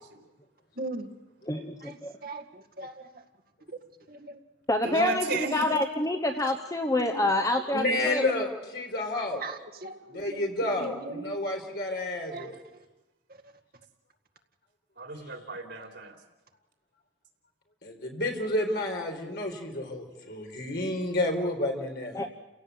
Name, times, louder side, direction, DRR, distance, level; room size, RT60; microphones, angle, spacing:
voice 1, 0.8-1.1 1.8-3.1 3.7-3.8 4.1-4.4 5.7-5.8 7.0-7.3 7.7-7.8 9.4-10.4 10.8-11.4 12.3-12.6, right 2 dB, 55° right, 4 dB, 1.9 m, -40 dB
voice 2, 1.5-2.1 4.7-8.3 22.1-22.3, left 1 dB, 20° left, 5 dB, 1.0 m, -27 dB
voice 3, 4.8-5.7 15.0-16.1, right 3 dB, 90° right, 2 dB, 3.3 m, -33 dB
voice 4, 7.7-9.4 10.1-12.6 17.8-22.2, left 1 dB, 60° left, 1 dB, 4.5 m, -30 dB
29.5 x 17.0 x 8.1 m, 1.1 s
head